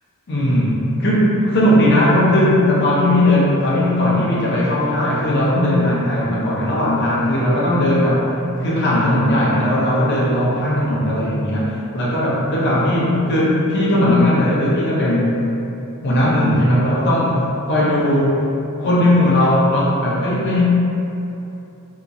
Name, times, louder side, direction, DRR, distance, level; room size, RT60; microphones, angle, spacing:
voice 1, 0.3-8.3 8.6-15.3 16.0-17.4 17.7-18.5 18.8-20.6, left 1 dB, 50° left, -6 dB, 0.6 m, -17 dB
2.9 x 2.4 x 2.5 m, 2.8 s
head